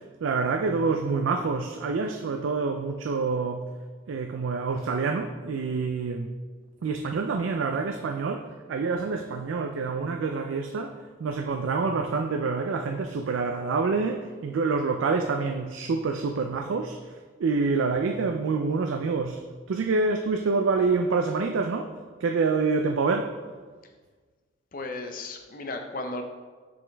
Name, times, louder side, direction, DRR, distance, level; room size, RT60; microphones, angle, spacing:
voice 1, 0.2-3.7 4.1-6.3 6.8-10.9 11.2-17.0 17.4-19.4 19.7-21.9 22.2-23.3, right 4 dB, 90° right, 5 dB, 0.4 m, -27 dB
voice 2, 24.7-26.2, left 2 dB, 45° left, 4 dB, 0.6 m, -35 dB
7.0 x 5.1 x 3.4 m, 1.5 s
head